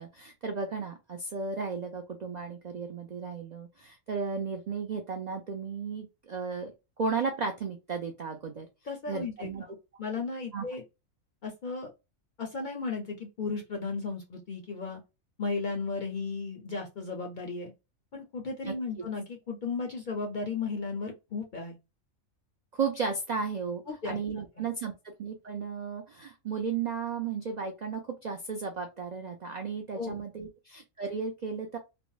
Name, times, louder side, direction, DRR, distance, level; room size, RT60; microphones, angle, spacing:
voice 1, 0.0-6.7 7.0-8.7 9.1-9.6 10.5-10.7 18.6-19.0 22.7-31.8, right 5 dB, 85° right, 0.3 m, -34 dB
voice 2, 8.9-9.5 10.0-10.8 11.4-11.9 12.4-15.0 15.4-17.7 18.1-21.8 23.9-24.2 30.0-30.2, left 4 dB, 55° left, 0.5 m, -35 dB
3.5 x 2.0 x 2.2 m
omnidirectional pair, 1.4 m